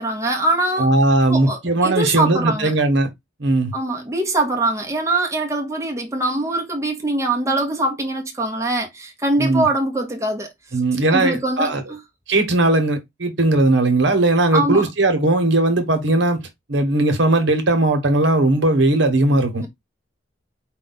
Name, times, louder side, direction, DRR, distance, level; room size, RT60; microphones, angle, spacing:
voice 1, 0.0-0.9 1.3-2.7 3.7-10.8 11.1-12.0 14.5-14.9, right 2 dB, 15° right, 0.8 m, -23 dB
voice 2, 0.8-3.1 3.4-3.7 9.4-9.7 10.7-11.8 12.3-16.4 16.7-19.6, right 2 dB, 70° right, 1.1 m, -18 dB
4.8 x 2.3 x 3.9 m
head